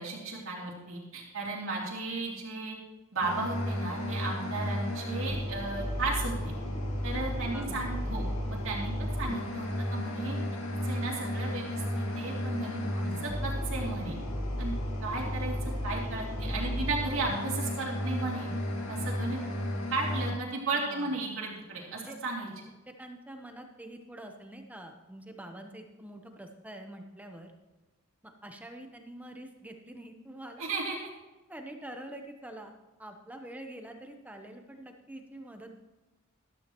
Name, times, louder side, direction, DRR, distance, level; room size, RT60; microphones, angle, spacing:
voice 1, 0.0-2.8 3.1-6.5 7.0-10.4 10.8-13.1 13.4-14.2 14.6-14.7 15.0-18.5 18.9-19.4 19.9-22.5 30.6-31.0, right 3 dB, 70° right, -4 dB, 2.7 m, -35 dB
sound 1, 3.2-20.3, left 1 dB, 80° left, 2.2 m, -33 dB
voice 2, 7.5-7.8 12.6-13.3 20.7-21.2 21.9-22.2 22.9-27.5 28.2-30.6 31.5-32.7 33.0-35.8, right 1 dB, 5° right, 4 dB, 0.8 m, -46 dB
14.0 x 12.5 x 3.0 m, 1.2 s
head